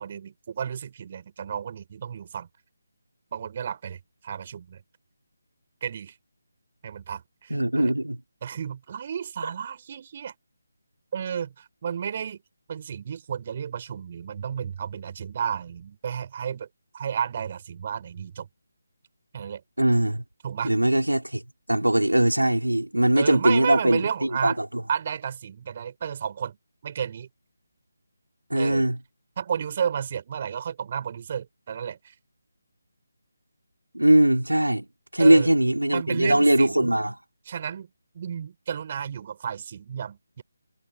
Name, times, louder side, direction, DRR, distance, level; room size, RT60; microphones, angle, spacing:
voice 1, 0.0-2.5 3.3-4.8 5.8-6.1 6.8-7.9 8.4-10.3 11.1-12.4 12.7-16.7 16.9-18.5 19.3-19.6 20.4-20.7 23.2-24.6 24.9-26.6 26.8-27.3 28.5-28.9 29.4-32.1 35.2-35.5 35.9-36.9 37.5-37.9 38.1-40.4, right 8 dB, 35° right, 7.2 m, -32 dB
voice 2, 7.5-8.2 19.8-20.2 20.6-21.4 21.7-24.6 28.5-29.0 33.9-34.9 35.1-37.1, right 1 dB, 85° right, 3.4 m, -21 dB
figure-of-eight pair, 155°, 0 cm